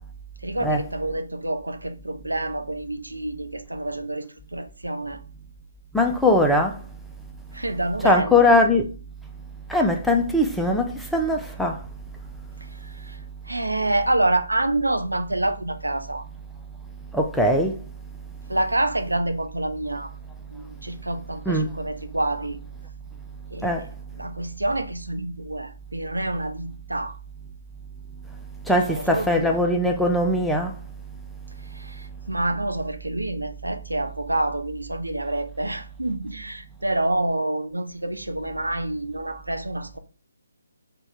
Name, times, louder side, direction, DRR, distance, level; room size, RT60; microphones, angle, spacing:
voice 1, 0.4-5.2 7.5-8.6 12.8-13.2 13.5-16.2 18.5-20.1 20.5-22.6 23.5-23.9 24.2-27.2 28.9-29.6 31.7-40.0, right 1 dB, 75° right, 0.5 m, -27 dB
voice 2, 5.9-6.8 8.0-8.8 9.7-11.8 17.1-17.8 21.5-21.7 23.6-23.9 28.7-30.7, left 1 dB, ahead, 0.3 m, -20 dB
3.4 x 2.2 x 4.2 m
figure-of-eight pair, 145°, 0 cm